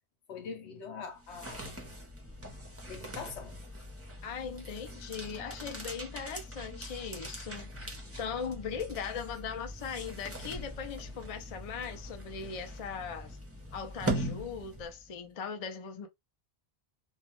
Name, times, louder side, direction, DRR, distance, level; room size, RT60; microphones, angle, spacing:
voice 1, 0.3-1.7 2.9-3.6, left 5 dB, 85° left, 1.1 m, -43 dB
sound 1, 1.1-15.1, right 1 dB, 20° right, 0.5 m, -41 dB
voice 2, 4.2-7.7 8.2-13.4 13.7-16.1, left 6 dB, 45° left, 0.5 m, -39 dB
2.3 x 2.3 x 3.0 m
omnidirectional pair, 1.1 m